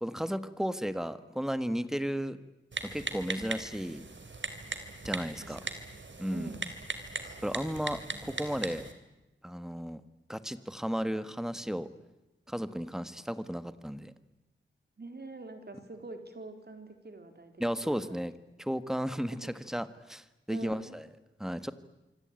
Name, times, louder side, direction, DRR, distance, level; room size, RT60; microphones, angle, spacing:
voice 1, 0.0-2.4 2.8-4.0 5.0-5.6 6.2-6.5 7.4-8.9 9.4-10.0 10.3-11.9 12.5-14.1 17.6-18.3 18.6-21.0 21.4-21.7, equal, ahead, 13 dB, 1.6 m, -34 dB
Typing, 2.7-8.9, right 3 dB, 70° right, 3.0 m, -39 dB
voice 2, 5.4-5.8 6.3-6.7 8.1-8.2 15.0-18.0 19.3-19.5 20.5-21.0, right 3 dB, 55° right, 7 dB, 3.9 m, -45 dB
26.5 x 25.0 x 9.0 m, 1.0 s
wide cardioid pair, 85°, 20 cm